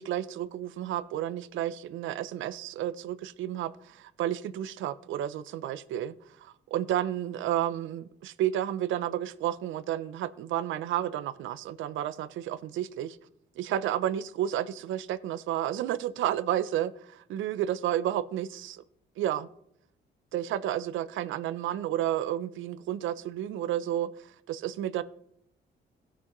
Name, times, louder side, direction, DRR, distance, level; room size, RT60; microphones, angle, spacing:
voice 1, 0.0-13.2 13.6-18.8 19.2-19.5 20.3-25.0, right 11 dB, 80° right, 0.5 m, -31 dB
17.0 x 6.1 x 3.1 m
cardioid pair, 90°, 20 cm